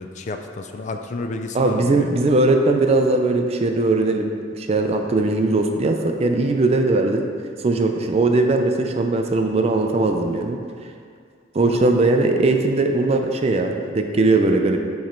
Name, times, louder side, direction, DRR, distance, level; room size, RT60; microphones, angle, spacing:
voice 1, 0.0-2.1 11.7-11.8, left 3 dB, 40° left, 5 dB, 0.4 m, -31 dB
voice 2, 1.5-7.2 7.6-10.6 11.5-14.8, right 2 dB, 35° right, 4 dB, 0.4 m, -19 dB
8.0 x 3.2 x 4.3 m, 2.2 s
head